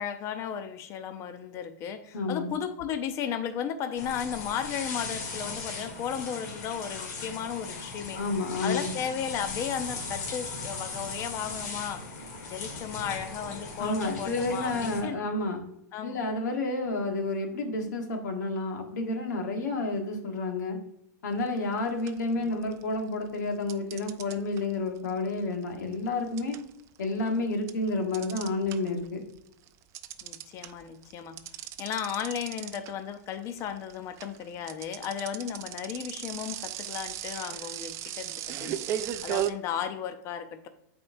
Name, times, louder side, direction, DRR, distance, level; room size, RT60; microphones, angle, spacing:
voice 1, 0.0-8.2 8.6-12.0 12.4-15.3 15.9-16.2 22.3-22.6 30.2-31.4 31.8-40.7, left 8 dB, 30° left, 9 dB, 0.6 m, -35 dB
voice 2, 2.1-2.5 8.1-8.9 13.8-15.6 16.0-20.8 21.2-26.6 27.0-29.2, left 2 dB, 80° left, 4 dB, 1.5 m, -30 dB
sound 1, 4.0-15.0, left 3 dB, 65° left, 1.8 m, -38 dB
sound 2, 21.5-21.7 22.1-23.0 23.7-29.1 29.4-39.5, right 11 dB, 30° right, 0.4 m, -36 dB
8.4 x 4.4 x 2.7 m, 0.77 s
hypercardioid pair, 135°, 9 cm